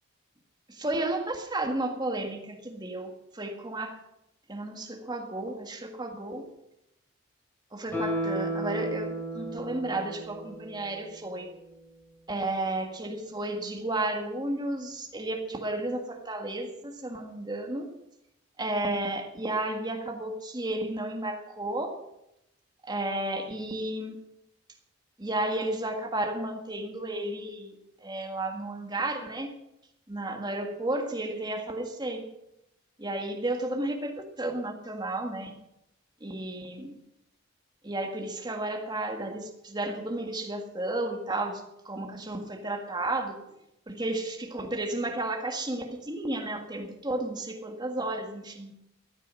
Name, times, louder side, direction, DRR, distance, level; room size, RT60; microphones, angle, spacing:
voice 1, 0.7-4.0 4.5-6.5 7.7-11.5 12.3-17.9 18.6-22.0 22.9-24.2 25.2-27.8 28.0-29.5 30.1-32.3 33.0-35.6 36.2-37.0 37.8-43.4 43.9-48.7, right 2 dB, 20° right, 3 dB, 1.7 m, -32 dB
Guitar, 7.9-11.2 11.5-11.6, right 1 dB, 10° left, 4.0 m, -34 dB
14.5 x 9.7 x 6.2 m, 0.83 s
head